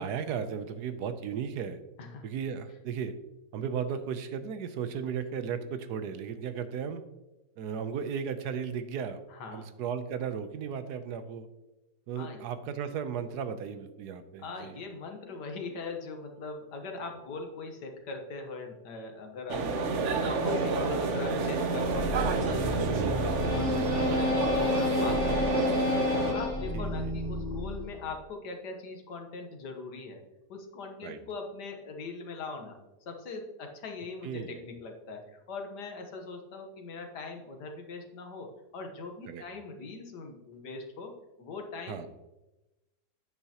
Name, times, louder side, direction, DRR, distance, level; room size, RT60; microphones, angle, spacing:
voice 1, 0.0-1.8 2.2-3.1 3.5-7.0 7.6-9.2 9.5-11.5 12.1-14.8 20.0-20.2 22.9-23.3 26.7-27.1 31.0-31.2 34.2-34.6 39.3-39.4 41.9-42.1, right 7 dB, 75° right, 11 dB, 1.2 m, -35 dB
voice 2, 9.3-9.7 12.2-12.4 14.4-25.9 26.2-30.2 30.5-32.8 33.1-42.1, left 3 dB, 80° left, 3 dB, 1.8 m, -41 dB
sound 1, 19.5-26.3, right 3 dB, 55° right, 1.0 m, -29 dB
sound 2, 21.8-28.1, left 2 dB, 25° left, 2.2 m, -31 dB
9.4 x 8.4 x 2.9 m, 1.0 s
omnidirectional pair, 1.8 m